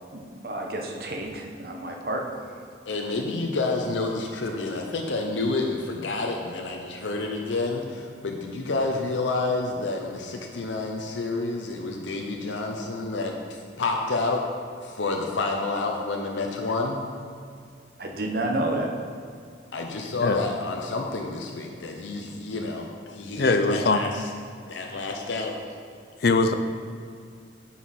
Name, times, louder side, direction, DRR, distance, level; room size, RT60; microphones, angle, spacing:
voice 1, 0.1-2.6 18.0-18.9, right 1 dB, 55° right, 2 dB, 1.0 m, -30 dB
voice 2, 2.9-14.4 14.8-17.0 19.7-24.2 24.7-25.6, left 3 dB, 90° left, 1 dB, 0.7 m, -29 dB
voice 3, 23.4-24.1 26.2-26.5, left 3 dB, 55° left, 8 dB, 0.5 m, -21 dB
9.3 x 5.6 x 4.3 m, 2.2 s
head